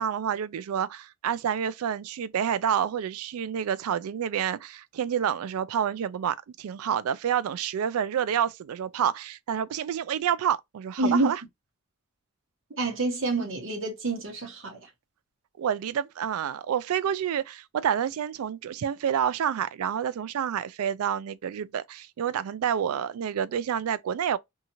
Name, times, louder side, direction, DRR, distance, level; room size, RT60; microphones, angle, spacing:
voice 1, 0.0-11.4 15.6-24.4, right 8 dB, 85° right, 0.3 m, -28 dB
voice 2, 11.0-11.3 12.8-14.8, right 2 dB, 60° right, 1.0 m, -27 dB
2.7 x 2.4 x 2.8 m
head